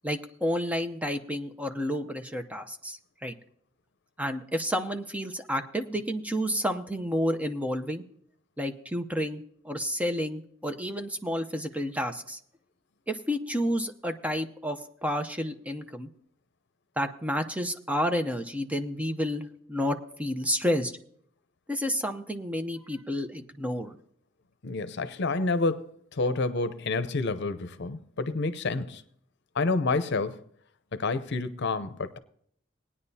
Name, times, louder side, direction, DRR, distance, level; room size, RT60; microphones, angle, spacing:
voice 1, 0.0-3.3 4.2-8.0 8.6-12.4 13.1-16.1 17.0-20.9 21.7-23.9, equal, 5° right, 0.7 m, -30 dB
voice 2, 24.6-29.0 29.5-30.4 30.9-32.2, left 3 dB, 60° left, 0.7 m, -29 dB
19.0 x 9.8 x 2.8 m
head